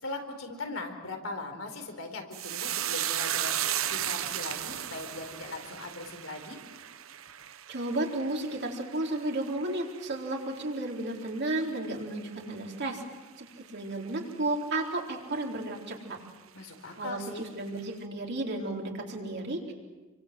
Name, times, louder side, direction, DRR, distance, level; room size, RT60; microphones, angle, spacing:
voice 1, 0.0-3.5 3.9-6.6 16.5-17.5, left 2 dB, 70° left, 4 dB, 4.4 m, -39 dB
sound 1, 2.3-10.9 11.2-11.9 12.2-12.4, right 11 dB, 75° right, 1.1 m, -35 dB
voice 2, 7.7-13.0 13.4-16.2 17.0-19.7, right 2 dB, 55° right, 0 dB, 4.3 m, -33 dB
28.5 x 24.5 x 7.9 m, 1.2 s
head